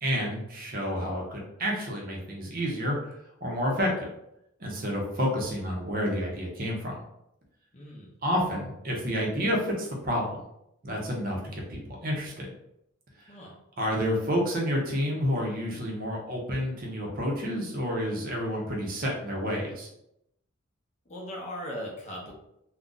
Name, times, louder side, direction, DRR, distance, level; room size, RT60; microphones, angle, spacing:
voice 1, 0.0-4.1 4.6-7.0 8.2-10.4 10.8-12.5 13.3-13.4 13.8-19.9, equal, 45° right, -1 dB, 0.7 m, -29 dB
voice 2, 7.7-8.1 13.3-13.6 21.1-22.3, equal, 35° left, -1 dB, 0.6 m, -38 dB
2.4 x 2.2 x 3.8 m, 0.81 s
head